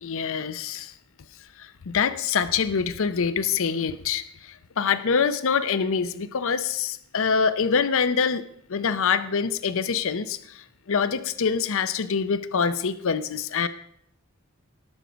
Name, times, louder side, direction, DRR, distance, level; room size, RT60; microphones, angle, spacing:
voice 1, 0.0-0.9 1.6-13.7, left 6 dB, 65° left, 12 dB, 0.6 m, -25 dB
18.5 x 6.4 x 5.1 m, 0.73 s
head